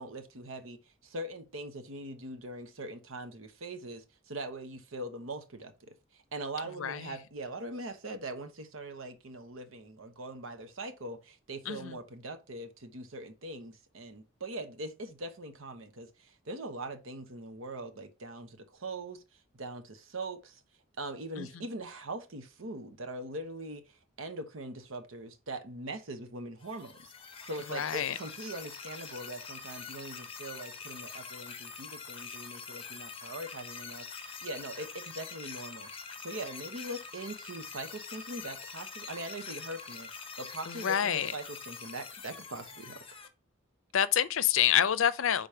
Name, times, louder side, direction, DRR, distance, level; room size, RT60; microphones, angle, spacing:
voice 1, 0.0-19.2 19.5-20.6 21.0-27.1 27.4-35.9 36.2-43.0, right 1 dB, 80° right, 1.0 m, -42 dB
sound 1, 26.6-43.3, left 6 dB, 30° left, 0.8 m, -45 dB
voice 2, 27.7-28.1 40.7-41.3 43.9-45.5, left 9 dB, 80° left, 0.5 m, -27 dB
5.0 x 4.0 x 5.7 m
head